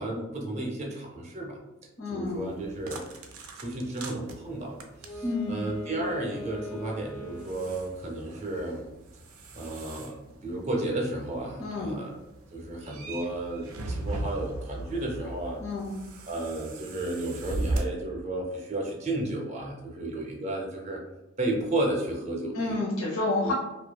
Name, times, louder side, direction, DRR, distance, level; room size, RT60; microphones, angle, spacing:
voice 1, 0.0-1.6 2.1-3.0 3.5-4.8 5.1-8.8 9.5-12.2 12.5-15.6 16.3-21.0 21.4-22.8 23.4-23.5, right 2 dB, 30° right, -1 dB, 0.5 m, -33 dB
voice 2, 2.0-2.5 5.2-5.6 11.6-12.0 15.6-16.0 22.4-23.5, left 2 dB, 80° left, -4 dB, 0.7 m, -30 dB
sound 1, 2.2-17.8, right 2 dB, 85° right, 0.4 m, -39 dB
Wind instrument woodwind instrument, 4.9-7.9, left 1 dB, 40° left, 0.4 m, -41 dB
2.6 x 2.2 x 2.2 m, 0.96 s
head